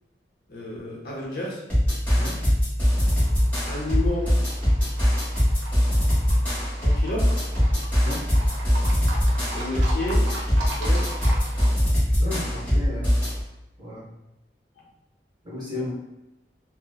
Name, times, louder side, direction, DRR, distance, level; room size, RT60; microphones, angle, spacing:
voice 1, 0.5-1.6 3.6-4.4 6.8-7.4 9.5-11.2 15.7-15.9, left 2 dB, 60° left, -5 dB, 0.7 m, -32 dB
sound 1, 1.7-13.4, equal, 10° left, 1.2 m, -22 dB
Livestock farm animals working animals, 2.9-11.7, right 1 dB, 80° right, 0.6 m, -39 dB
voice 2, 12.2-13.1 13.8-14.1 15.4-16.0, left 1 dB, 20° right, -8 dB, 1.0 m, -34 dB
2.9 x 2.0 x 2.3 m, 0.95 s
head